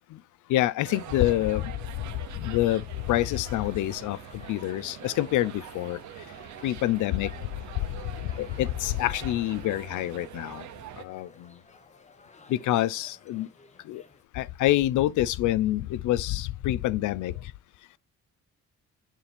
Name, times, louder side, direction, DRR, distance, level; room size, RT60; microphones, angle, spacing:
voice 1, 0.5-1.6 2.4-2.8 3.1-4.2 4.5-6.0 6.6-7.3 8.4-10.6 11.0-11.3 12.5-13.5 13.9-14.0 14.4-17.3, left 15 dB, 80° left, 0.5 m, -26 dB
sound 1, 0.8-11.0, right 10 dB, 70° right, 0.8 m, -44 dB
sound 2, 3.0-14.2, left 4 dB, 25° left, 1.1 m, -54 dB
7.2 x 5.7 x 3.4 m
cardioid pair, 90°, 30 cm